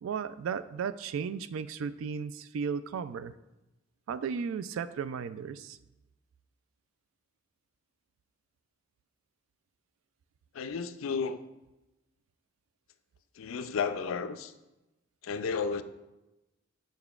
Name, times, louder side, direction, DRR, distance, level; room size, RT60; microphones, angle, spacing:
voice 1, 0.0-3.3 4.1-5.8, right 6 dB, 85° right, 0.3 m, -35 dB
voice 2, 10.5-11.4 13.4-14.5 15.2-15.8, left 5 dB, 85° left, 0.4 m, -32 dB
6.9 x 6.4 x 2.4 m
head